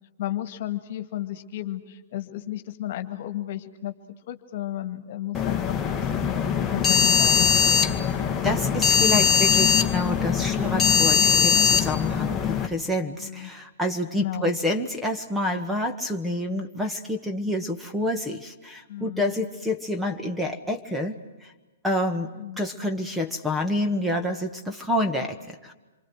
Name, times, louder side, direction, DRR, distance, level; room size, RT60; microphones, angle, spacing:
voice 1, 0.2-3.9 4.3-6.3 6.7-7.5 13.2-13.5 14.1-14.5 18.9-19.3 22.4-22.6, left 13 dB, 55° left, 8 dB, 2.0 m, -33 dB
sound 1, 5.3-12.7, left 7 dB, 15° left, 1.9 m, -21 dB
voice 2, 8.4-21.5 21.8-22.3 22.6-25.7, left 1 dB, 5° right, 5 dB, 1.7 m, -28 dB
27.5 x 24.0 x 6.2 m, 1.2 s
hypercardioid pair, 130°, 0 cm